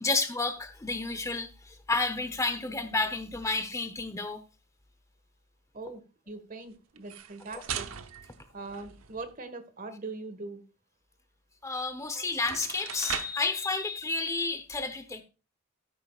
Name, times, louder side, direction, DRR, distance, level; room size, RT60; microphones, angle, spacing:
voice 1, 0.0-4.4 11.6-15.2, left 3 dB, 15° left, 0.8 m, -31 dB
voice 2, 5.7-7.9 8.5-10.6 12.1-12.3, right 3 dB, 40° right, 1.6 m, -41 dB
sound 1, 7.0-9.4 11.8-11.9 12.3-13.5, right 8 dB, 90° right, 1.0 m, -39 dB
13.0 x 9.9 x 2.4 m
head